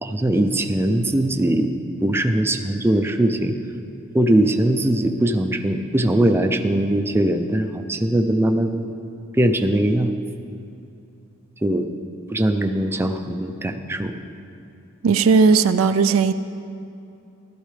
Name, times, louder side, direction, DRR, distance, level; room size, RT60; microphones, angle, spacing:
voice 1, 0.0-1.7 2.0-3.6 4.1-8.9 9.4-10.2 11.6-11.9 12.3-14.1, right 1 dB, 10° right, 6 dB, 0.5 m, -20 dB
voice 2, 15.0-16.3, right 5 dB, 75° right, 12 dB, 0.4 m, -16 dB
14.0 x 13.0 x 3.3 m, 2.6 s
head